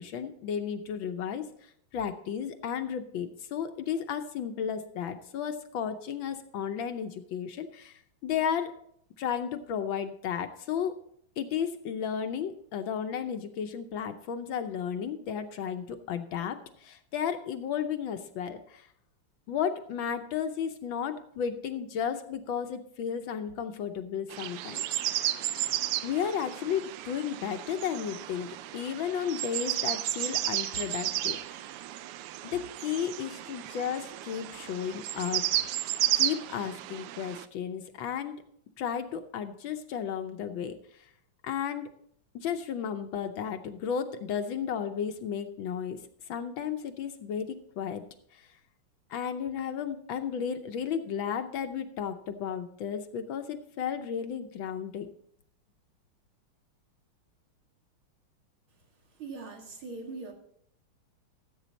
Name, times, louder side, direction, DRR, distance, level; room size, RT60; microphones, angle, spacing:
voice 1, 0.0-8.7 9.2-10.9 11.4-18.9 19.5-24.9 25.1-25.2 26.0-31.7 32.4-35.4 36.2-38.4 38.8-41.1 41.4-41.9 42.3-46.0 46.3-48.0 48.3-48.5 49.1-55.1, left 8 dB, 70° left, 8 dB, 1.4 m, -33 dB
sound 1, 24.3-37.5, right 14 dB, 90° right, 1.5 m, -33 dB
voice 2, 59.1-60.3, right 3 dB, 65° right, 1 dB, 2.8 m, -41 dB
14.0 x 8.3 x 4.0 m, 0.68 s
omnidirectional pair, 2.4 m